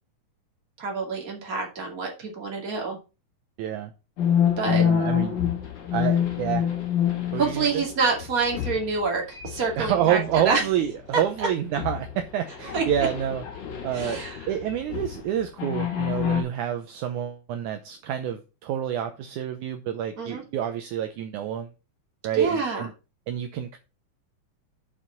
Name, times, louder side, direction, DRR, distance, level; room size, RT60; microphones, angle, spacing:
voice 1, 0.8-3.0 4.6-4.9 7.4-10.6 11.1-11.5 12.7-13.1 13.9-14.4 20.2-20.4 22.3-22.9, right 4 dB, 30° right, 2.4 m, -27 dB
voice 2, 3.6-3.9 4.7-5.4 5.9-6.7 7.3-7.8 9.8-13.4 13.8-21.7 22.2-22.9 23.3-23.8, right 10 dB, 75° right, 2.0 m, -28 dB
sound 1, 4.2-9.0 9.3-10.9 11.2-11.4 11.8-15.2 15.6-16.4, left 9 dB, 65° left, 3.2 m, -27 dB
7.5 x 5.0 x 5.8 m
omnidirectional pair, 3.9 m